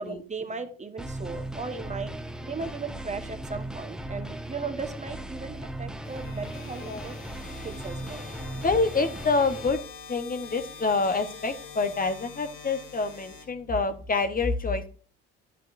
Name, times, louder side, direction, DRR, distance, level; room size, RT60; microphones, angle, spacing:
voice 1, 0.0-2.1 2.4-7.1 7.6-8.2, right 4 dB, 25° right, 9 dB, 1.1 m, -37 dB
sound 1, 1.0-9.7, right 1 dB, ahead, 1.2 m, -38 dB
sound 2, 6.0-14.0, left 7 dB, 50° left, 3.5 m, -45 dB
voice 2, 8.6-9.8 10.1-14.9, left 3 dB, 30° left, 9 dB, 1.0 m, -27 dB
10.5 x 8.4 x 2.5 m, 0.41 s
hypercardioid pair, 60°, 30 cm